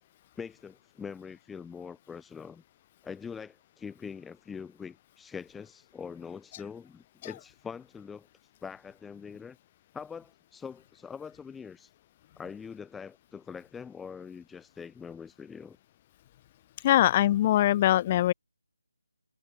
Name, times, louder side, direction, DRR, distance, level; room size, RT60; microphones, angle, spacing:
voice 1, 0.3-2.6 3.0-8.3 8.6-9.6 9.9-11.9 12.4-15.8 16.8-16.9, left 6 dB, 5° left, 5.0 m, -43 dB
voice 2, 16.8-18.3, left 13 dB, 20° left, 1.0 m, -22 dB
figure-of-eight pair, 165°, 0 cm